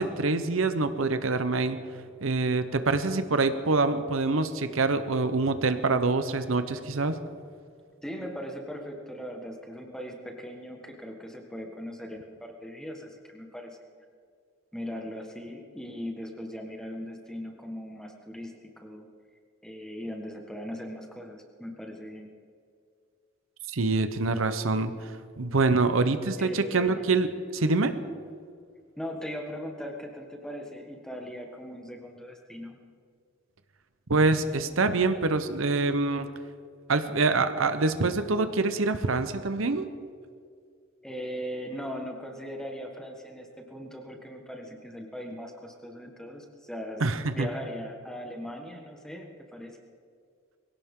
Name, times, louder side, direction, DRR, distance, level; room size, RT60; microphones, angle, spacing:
voice 1, 0.0-1.8 2.2-7.2 23.7-25.1 25.4-28.0 34.1-36.3 36.9-39.9 47.0-47.5, right 3 dB, 85° right, 10 dB, 0.9 m, -25 dB
voice 2, 8.0-13.8 14.7-19.1 19.6-22.3 26.4-27.0 29.0-32.8 41.0-47.0 47.3-49.8, equal, 5° left, 2 dB, 1.5 m, -39 dB
22.0 x 17.0 x 3.8 m, 2.2 s
head